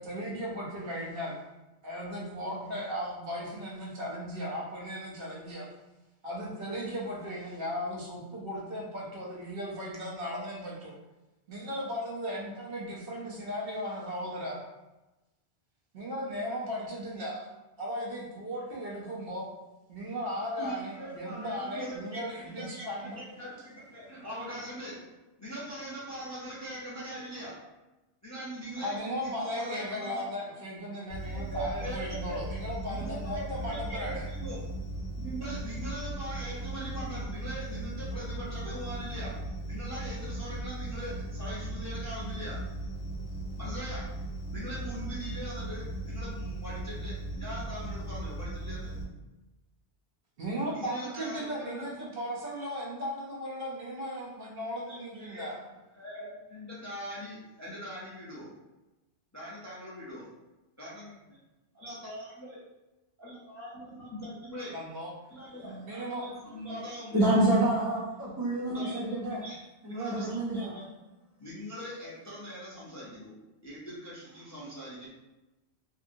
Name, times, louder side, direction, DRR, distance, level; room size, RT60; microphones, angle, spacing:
voice 1, 0.0-1.4 1.8-5.7 6.2-11.0 11.5-14.7 15.9-17.5 17.8-19.5 19.9-23.2 28.8-34.2 50.4-55.6 64.7-65.1 65.6-66.3, equal, 60° right, -4 dB, 0.9 m, -36 dB
voice 2, 20.6-27.6 28.2-30.3 31.3-32.4 32.8-34.6 35.2-39.4 39.7-42.6 43.6-44.1 44.5-49.0 50.7-51.8 54.9-55.5 55.9-58.5 59.3-60.3 60.8-61.4 61.7-62.6 63.2-64.8 65.3-67.3 68.7-70.9 71.4-73.4 73.6-75.1, equal, 20° left, -8 dB, 0.5 m, -41 dB
sound 1, 31.1-49.0, right 1 dB, 50° left, 0.7 m, -37 dB
voice 3, 67.1-69.4 69.8-70.8, right 1 dB, 30° right, -7 dB, 0.4 m, -27 dB
2.7 x 2.6 x 2.6 m, 1.0 s
omnidirectional pair, 1.1 m